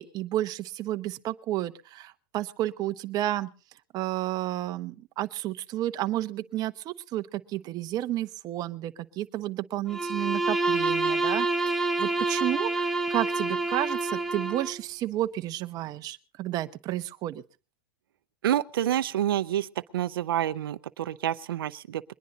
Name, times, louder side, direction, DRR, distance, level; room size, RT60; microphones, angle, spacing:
voice 1, 0.0-3.5 3.9-17.4, right 14 dB, 35° right, 0.9 m, -31 dB
Bowed string instrument, 9.9-14.8, right 2 dB, 5° left, 1.7 m, -27 dB
voice 2, 18.4-19.7 19.9-22.0, right 11 dB, 90° right, 0.7 m, -28 dB
22.5 x 10.5 x 4.0 m
supercardioid pair, 135°, 12 cm